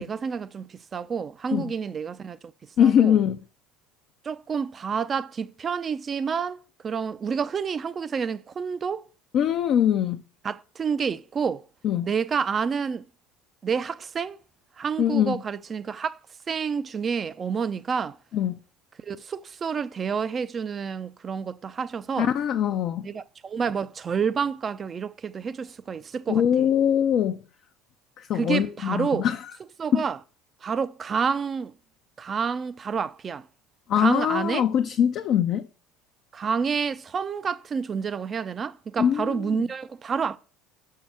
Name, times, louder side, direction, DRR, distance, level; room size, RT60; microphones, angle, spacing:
voice 1, 0.0-2.5 2.8-3.2 4.2-9.1 10.4-11.6 12.0-13.1 13.6-14.4 14.8-16.2 16.5-18.2 19.0-22.3 23.0-26.7 28.3-29.3 29.8-30.2 30.6-31.7 32.2-33.5 34.0-34.7 36.3-40.4, right 6 dB, 35° right, 0.6 m, -29 dB
voice 2, 2.8-3.4 9.3-10.2 11.8-12.1 15.0-15.4 18.3-18.6 22.2-23.1 26.3-27.4 28.2-29.4 29.9-30.0 33.9-35.7 39.0-39.6, left 9 dB, 50° left, 0.6 m, -22 dB
6.3 x 5.6 x 6.0 m
hypercardioid pair, 70°, 0 cm